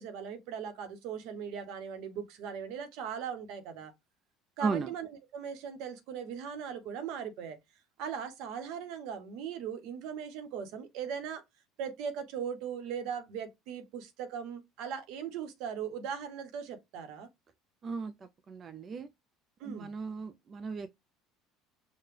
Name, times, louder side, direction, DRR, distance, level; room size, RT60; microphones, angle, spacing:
voice 1, 0.0-3.9 4.6-5.1 5.3-7.6 8.0-11.4 11.8-17.3 19.6-19.9, right 7 dB, 70° right, 0.9 m, -39 dB
voice 2, 4.6-4.9 17.8-19.1 19.6-20.9, right 5 dB, 35° right, 0.4 m, -36 dB
5.1 x 2.1 x 3.2 m
supercardioid pair, 110°, 0 cm